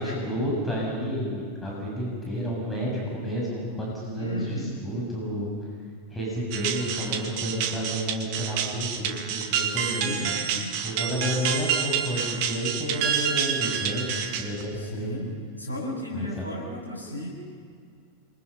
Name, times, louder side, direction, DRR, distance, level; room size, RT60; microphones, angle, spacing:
voice 1, 0.0-5.5 6.1-10.4 10.8-15.1 16.1-16.4, equal, 10° left, -3 dB, 7.5 m, -30 dB
voice 2, 4.2-4.8 9.7-10.7 14.7-15.3 15.6-17.3, left 1 dB, 85° left, -2 dB, 7.1 m, -35 dB
sound 1, 6.5-14.8, right 8 dB, 45° right, 2.0 m, -28 dB
28.0 x 24.0 x 5.6 m, 2.2 s
figure-of-eight pair, 90°, 0 cm